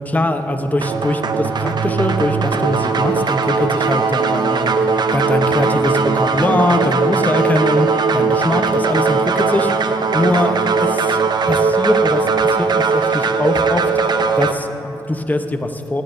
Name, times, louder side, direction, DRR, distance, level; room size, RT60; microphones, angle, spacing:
voice 1, 0.0-9.7 10.1-11.2 11.5-16.0, left 1 dB, 20° left, 6 dB, 0.9 m, -21 dB
sound 1, 0.8-14.5, right 4 dB, 65° right, 0.5 m, -18 dB
17.0 x 12.0 x 2.7 m, 2.9 s
cardioid pair, 65°, 8 cm